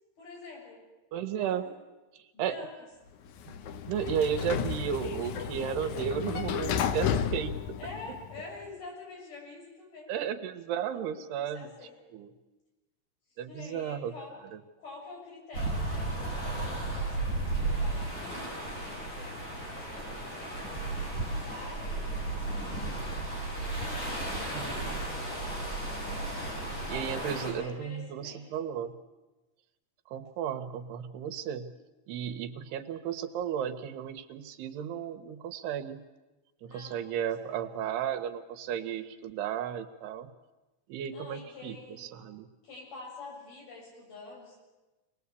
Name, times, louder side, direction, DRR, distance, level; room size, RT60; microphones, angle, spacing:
voice 1, 0.2-0.8 1.3-1.7 2.3-2.7 7.8-10.1 10.9-11.9 13.5-14.3 14.8-22.9 23.5-25.6 26.8-28.5 36.6-37.6 41.1-42.1 42.6-44.6, left 3 dB, 60° left, -2 dB, 8.7 m, -48 dB
voice 2, 1.1-1.6 2.1-2.5 3.9-7.6 10.1-11.7 12.1-12.3 13.4-14.1 14.5-14.6 24.3-25.0 26.9-28.9 30.1-31.7 32.1-36.0 36.6-40.3 40.9-42.5, right 9 dB, 75° right, 9 dB, 2.9 m, -34 dB
Sliding door, 3.3-8.5, left 8 dB, 90° left, 1.7 m, -33 dB
sound 1, 15.5-27.5, right 2 dB, 30° left, 6.8 m, -34 dB
25.0 x 19.5 x 8.3 m, 1.1 s
omnidirectional pair, 4.8 m